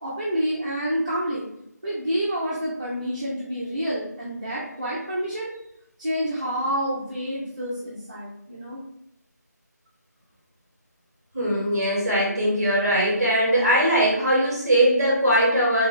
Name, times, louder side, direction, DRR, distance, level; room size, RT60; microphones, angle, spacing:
voice 1, 0.0-1.5 1.8-5.5 6.0-8.8, equal, 25° right, -8 dB, 0.6 m, -28 dB
voice 2, 11.3-15.9, equal, 10° right, -5 dB, 1.1 m, -20 dB
3.3 x 2.4 x 3.7 m, 0.77 s
figure-of-eight pair, 170°, 10 cm